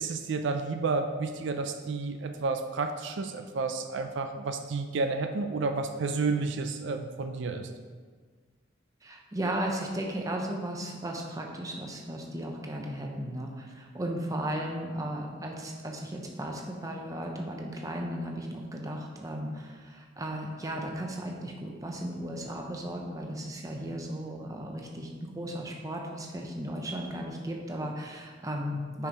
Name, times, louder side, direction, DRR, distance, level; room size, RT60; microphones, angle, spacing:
voice 1, 0.0-7.7, right 4 dB, 70° right, 6 dB, 0.4 m, -31 dB
voice 2, 9.0-29.1, right 1 dB, 15° right, 1 dB, 0.6 m, -35 dB
5.5 x 4.7 x 5.1 m, 1.5 s
head